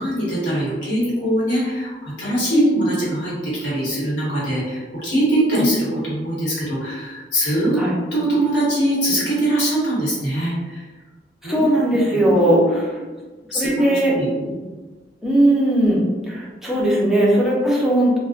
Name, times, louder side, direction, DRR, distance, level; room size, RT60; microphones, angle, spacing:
voice 1, 0.0-7.8 8.1-10.8 11.4-13.1 13.5-14.6 16.7-16.8, right 1 dB, 75° left, -8 dB, 1.0 m, -23 dB
voice 2, 2.5-2.8 5.5-5.7 7.8-8.0 11.4-12.8 13.5-14.1 15.2-18.2, right 1 dB, ahead, -5 dB, 0.5 m, -18 dB
2.6 x 2.0 x 2.3 m, 1.3 s
head